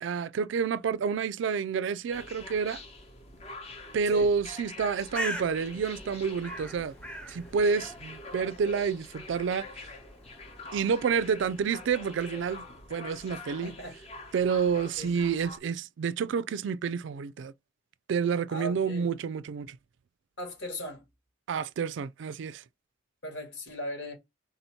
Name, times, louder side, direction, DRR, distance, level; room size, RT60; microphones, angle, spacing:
voice 1, 0.0-2.8 3.9-6.9 7.3-9.7 10.7-12.6 12.9-13.7 14.3-17.5 18.1-19.8 21.5-22.6, right 6 dB, 65° right, 0.3 m, -29 dB
sound 1, 2.1-15.6, left 2 dB, 35° left, 0.9 m, -45 dB
Bird, 4.7-12.3, equal, 5° left, 0.8 m, -43 dB
voice 2, 13.6-14.0 15.0-15.1 18.5-19.1 20.4-21.0 23.2-24.1, equal, 80° left, 2.2 m, -38 dB
3.9 x 2.7 x 4.3 m
head